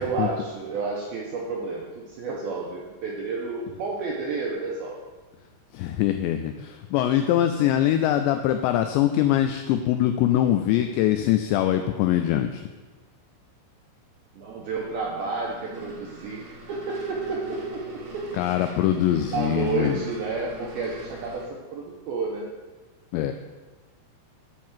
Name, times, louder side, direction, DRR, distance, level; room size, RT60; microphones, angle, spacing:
voice 1, 0.0-5.0 14.3-18.0 19.2-22.5, right 4 dB, 80° right, -2 dB, 2.2 m, -31 dB
voice 2, 5.7-12.6 18.4-20.0 23.1-23.3, left 12 dB, 85° left, 8 dB, 2.5 m, -23 dB
sound 1, 14.7-21.5, right 2 dB, 65° right, 1.3 m, -43 dB
10.5 x 4.5 x 7.3 m, 1.3 s
omnidirectional pair, 5.6 m